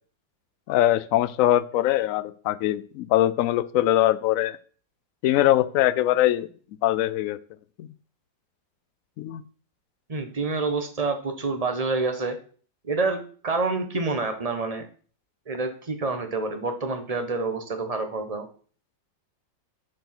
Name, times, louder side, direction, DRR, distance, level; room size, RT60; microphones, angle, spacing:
voice 1, 0.7-4.6 5.2-6.5 6.8-7.4 7.8-7.9 9.2-9.4, left 14 dB, 85° left, 14 dB, 0.7 m, -22 dB
voice 2, 10.1-12.3 12.8-14.9 15.5-18.5, right 3 dB, 25° right, 6 dB, 1.0 m, -27 dB
10.5 x 4.6 x 5.9 m, 0.43 s
omnidirectional pair, 2.0 m